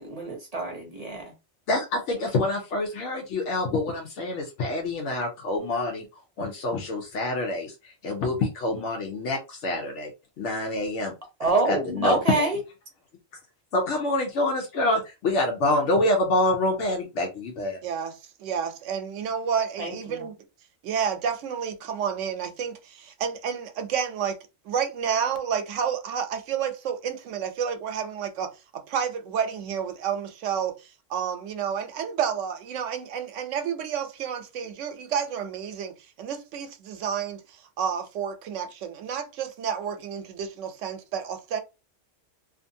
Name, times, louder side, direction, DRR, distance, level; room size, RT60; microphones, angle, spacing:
voice 1, 0.0-1.3 11.4-12.6 19.8-20.2, right 2 dB, 35° right, 0.7 m, -26 dB
voice 2, 1.7-6.0 6.4-10.1 10.4-11.1 11.4-12.5 13.7-17.8, left 2 dB, 75° left, 1.0 m, -26 dB
voice 3, 17.8-20.4 20.8-24.4 24.7-30.7 31.1-37.4 37.8-41.6, right 7 dB, 85° right, 0.9 m, -30 dB
2.5 x 2.5 x 2.6 m
omnidirectional pair, 1.2 m